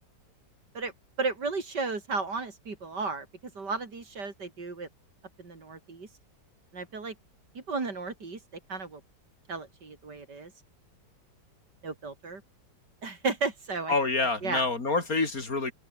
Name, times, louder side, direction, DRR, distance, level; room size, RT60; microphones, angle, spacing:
voice 1, 1.2-3.3 3.5-4.9 5.4-6.1 6.7-7.1 7.5-8.4 8.7-9.0 9.5-10.5 11.8-12.4 13.0-13.9 14.2-14.7, right 4 dB, 70° right, 4.0 m, -34 dB
voice 2, 13.9-15.7, left 3 dB, 50° left, 3.7 m, -27 dB
open air
omnidirectional pair, 1.9 m